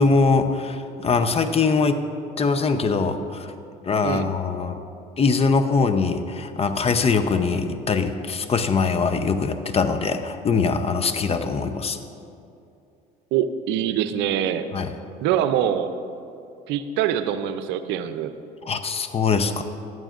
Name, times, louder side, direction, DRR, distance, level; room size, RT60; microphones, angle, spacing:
voice 1, 0.0-2.0 2.4-3.5 3.9-4.8 5.2-12.0 14.7-14.9 18.7-19.6, left 4 dB, 35° left, 9 dB, 0.7 m, -22 dB
voice 2, 13.3-14.7 15.2-15.9 16.7-18.3, right 10 dB, 75° right, 10 dB, 0.6 m, -24 dB
16.0 x 11.0 x 2.5 m, 2.6 s
supercardioid pair, 80°, 19 cm